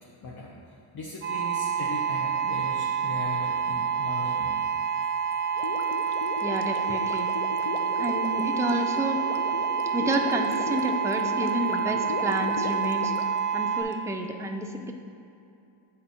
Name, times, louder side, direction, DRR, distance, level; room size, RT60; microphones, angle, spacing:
voice 1, 0.0-4.5, left 2 dB, 45° left, -3 dB, 0.9 m, -38 dB
sound 1, 1.2-13.8, right 7 dB, 25° right, 1.1 m, -28 dB
Gurgling, 5.5-13.9, left 6 dB, 75° left, 0.6 m, -37 dB
voice 2, 6.4-7.3 8.0-9.2 9.9-13.1 13.5-14.9, right 1 dB, 5° right, 3 dB, 0.3 m, -30 dB
8.1 x 3.4 x 4.3 m, 2.6 s
cardioid pair, 85°, 50 cm